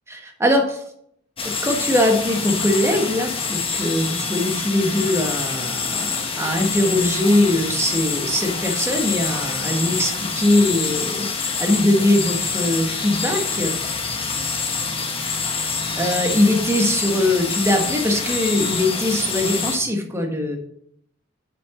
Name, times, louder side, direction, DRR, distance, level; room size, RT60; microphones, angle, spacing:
voice 1, 0.1-0.8 1.4-13.9 15.9-20.6, left 1 dB, 15° right, 3 dB, 1.4 m, -21 dB
sound 1, 1.4-19.8, left 5 dB, 25° left, 1.3 m, -26 dB
7.5 x 6.0 x 6.4 m, 0.70 s
head